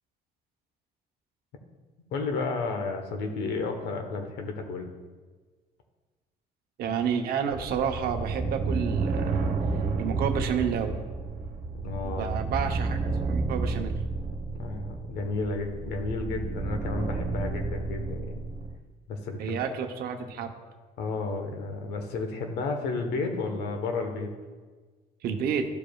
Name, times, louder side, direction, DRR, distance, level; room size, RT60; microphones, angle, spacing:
voice 1, 2.1-4.9 11.8-12.4 14.6-18.4 19.1-19.6 21.0-24.3, left 3 dB, 80° left, 4 dB, 1.1 m, -32 dB
voice 2, 6.8-9.4 10.0-11.0 12.0-13.0 13.3-14.0 19.4-20.5 25.2-25.7, right 7 dB, 65° right, 4 dB, 0.8 m, -30 dB
sound 1, 7.5-18.8, right 3 dB, 50° right, 1.3 m, -31 dB
14.0 x 5.0 x 2.3 m, 1.4 s
cardioid pair, 110°, 17 cm